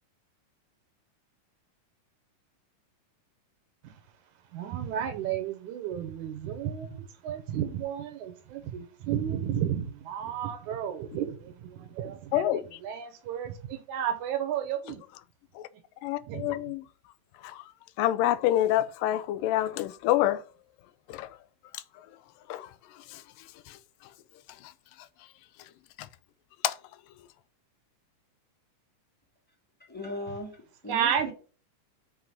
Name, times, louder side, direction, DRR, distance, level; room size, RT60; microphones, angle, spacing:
voice 1, 4.5-15.0 16.3-16.6 30.9-31.3, right 9 dB, 75° right, 2.1 m, -32 dB
voice 2, 16.0-16.8 17.4-17.6 18.0-20.4 21.1-21.3 22.5-22.7 23.1-23.2 26.6-26.7, left 13 dB, 85° left, 2.3 m, -26 dB
voice 3, 29.9-31.3, left 1 dB, 5° left, 1.4 m, -38 dB
7.8 x 4.0 x 5.4 m
omnidirectional pair, 3.8 m